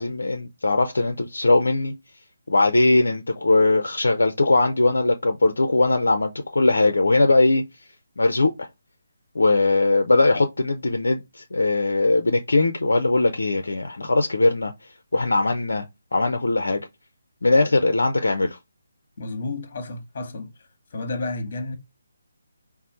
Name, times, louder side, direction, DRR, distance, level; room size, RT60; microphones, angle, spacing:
voice 1, 0.0-1.9 2.5-7.6 8.2-8.7 9.4-14.7 15.1-15.8 16.1-16.8 17.4-18.6, left 2 dB, 65° left, 0.4 m, -20 dB
voice 2, 19.2-20.5 20.9-21.8, left 2 dB, 40° left, 0.9 m, -31 dB
4.2 x 2.0 x 4.0 m
figure-of-eight pair, 145°, 0 cm